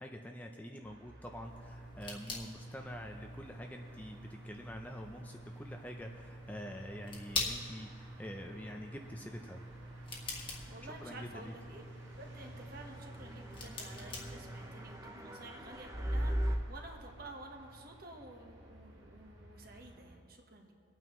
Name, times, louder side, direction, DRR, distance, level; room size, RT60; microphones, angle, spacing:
voice 1, 0.0-9.6 11.0-11.5, equal, 10° left, 3 dB, 0.5 m, -46 dB
sound 1, 0.8-20.1, right 1 dB, 65° right, 1.9 m, -57 dB
sound 2, 1.4-15.0, left 2 dB, 25° left, 1.3 m, -45 dB
voice 2, 10.7-11.8 12.2-20.7, right 2 dB, 45° right, 2 dB, 1.3 m, -51 dB
sound 3, 12.1-16.6, equal, 15° right, 0.8 m, -39 dB
24.0 x 9.0 x 3.1 m, 2.3 s
head